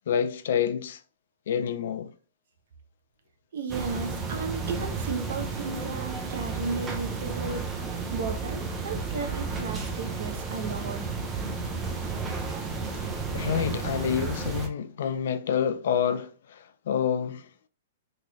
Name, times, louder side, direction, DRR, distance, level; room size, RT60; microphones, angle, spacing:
voice 1, 0.1-1.0 1.5-2.1 12.9-17.5, left 8 dB, 60° left, 0.4 m, -28 dB
voice 2, 3.5-7.6 8.1-11.0, right 4 dB, 60° right, 0.8 m, -34 dB
sound 1, 3.7-14.7, right 4 dB, 10° right, 0.4 m, -32 dB
3.9 x 3.1 x 2.3 m
hypercardioid pair, 170°, 0 cm